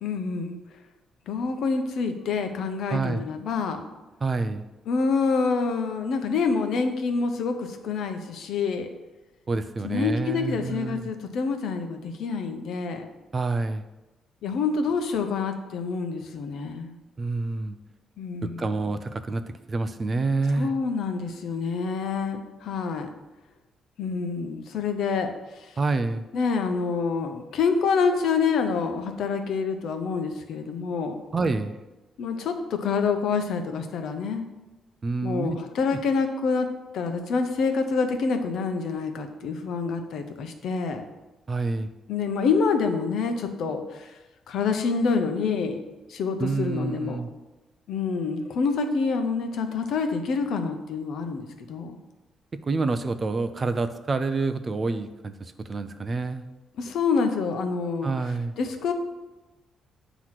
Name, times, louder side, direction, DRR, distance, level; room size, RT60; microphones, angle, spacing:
voice 1, 0.0-0.6 1.3-3.8 4.9-8.9 9.8-13.1 14.4-16.9 18.2-18.7 20.6-23.1 24.0-25.3 25.6-25.7 26.3-31.2 32.2-34.4 35.2-41.0 42.1-44.1 44.5-45.8 46.1-47.2 47.9-52.0 56.8-58.1 58.6-58.9, left 5 dB, 70° left, 6 dB, 0.7 m, -27 dB
voice 2, 2.9-3.2 4.2-4.6 9.5-11.1 13.3-13.8 17.2-17.8 18.4-19.4 19.7-20.7 25.8-26.2 31.3-31.7 35.0-35.6 35.9-36.0 41.5-41.9 46.4-47.3 52.7-55.3 55.7-56.4 58.0-58.5, right 3 dB, 25° right, 10 dB, 0.4 m, -27 dB
7.8 x 3.0 x 5.8 m, 1.1 s
cardioid pair, 140°, 0 cm